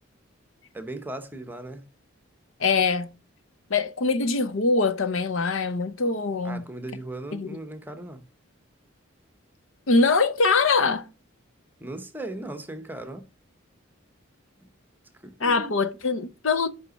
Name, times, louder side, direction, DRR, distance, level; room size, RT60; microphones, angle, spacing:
voice 1, 0.7-1.8 6.4-8.2 11.8-13.3 14.6-14.7 15.2-15.7, right 1 dB, 10° right, 0.8 m, -37 dB
voice 2, 2.6-3.1 3.7-6.7 7.3-7.6 9.9-11.1 15.4-16.7, left 4 dB, 75° left, 0.7 m, -23 dB
5.3 x 5.0 x 6.2 m
head